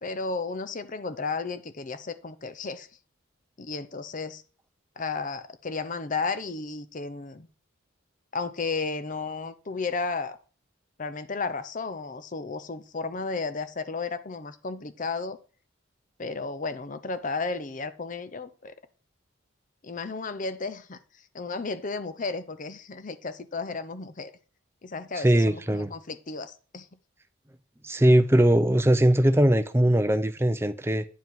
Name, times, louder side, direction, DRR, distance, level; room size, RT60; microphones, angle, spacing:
voice 1, 0.0-2.9 3.6-4.4 5.0-7.5 8.3-10.4 11.0-15.4 16.2-18.7 19.8-24.3 24.8-26.9, left 4 dB, 40° left, 0.6 m, -33 dB
voice 2, 25.2-25.9 27.8-31.0, right 1 dB, 10° right, 0.5 m, -20 dB
9.2 x 4.7 x 5.5 m
head